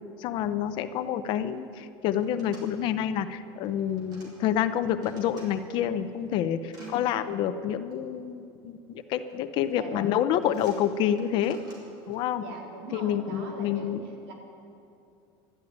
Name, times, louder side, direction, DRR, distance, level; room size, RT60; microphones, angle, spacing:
voice 1, 0.2-11.6 12.1-12.4 12.9-14.0, left 10 dB, 45° left, 11 dB, 0.6 m, -28 dB
sound 1, 1.0-1.1 1.3-1.6 2.1-2.7 3.6-4.3 4.7-5.5 6.0-6.9 7.9-8.0 9.0-9.3 9.6-10.0 10.4-12.2, right 1 dB, 35° right, 4.5 m, -54 dB
voice 2, 6.8-7.1 9.7-10.1 12.3-14.3, right 2 dB, 75° right, 0 dB, 3.6 m, -42 dB
12.5 x 12.0 x 9.4 m, 2.7 s
cardioid pair, 165°, 12 cm